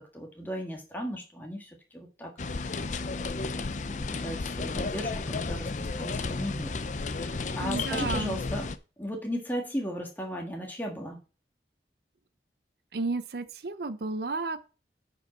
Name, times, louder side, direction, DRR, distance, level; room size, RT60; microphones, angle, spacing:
voice 1, 0.1-2.8 3.8-8.7 9.0-11.2, equal, 10° left, 1.6 m, -37 dB
sound 1, 2.4-8.8, left 3 dB, 40° left, 0.5 m, -33 dB
voice 2, 7.6-8.4 12.9-14.6, right 3 dB, 60° right, 0.6 m, -32 dB
9.7 x 5.1 x 4.2 m
head